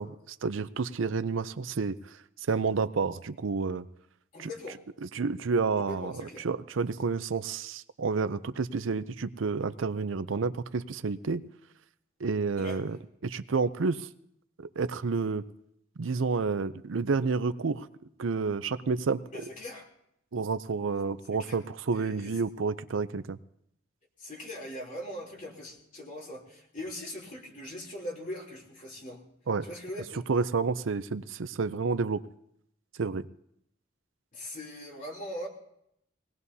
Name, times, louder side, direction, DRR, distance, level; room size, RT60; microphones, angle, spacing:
voice 1, 0.0-2.0 2.5-3.8 4.4-4.5 5.1-6.1 6.4-11.4 12.2-13.0 13.2-14.1 14.6-15.4 16.0-17.9 18.2-19.2 20.3-23.4 29.5-29.7 30.3-32.2 33.0-33.3, right 4 dB, 80° right, 13 dB, 0.6 m, -30 dB
voice 2, 4.3-4.8 5.8-6.5 12.6-12.8 19.3-19.9 21.4-21.6 21.9-22.3 24.2-29.2 29.6-30.2 34.3-35.5, left 1 dB, 45° left, -1 dB, 3.2 m, -41 dB
21.5 x 18.0 x 2.8 m, 0.76 s
head